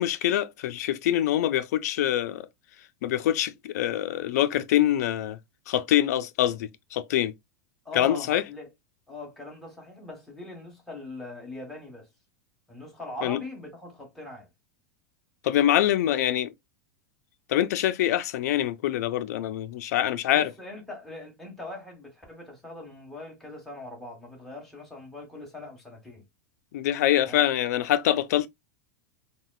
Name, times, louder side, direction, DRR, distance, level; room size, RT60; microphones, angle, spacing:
voice 1, 0.0-2.5 3.0-5.4 5.7-7.3 7.9-8.4 13.2-13.4 15.4-16.5 17.5-20.5 26.7-28.5, left 12 dB, 75° left, 0.4 m, -25 dB
voice 2, 7.8-8.7 9.1-12.1 12.7-14.5 20.3-26.2 27.2-27.4, left 2 dB, 5° left, 1.4 m, -41 dB
3.8 x 2.1 x 2.2 m
supercardioid pair, 125°, 9 cm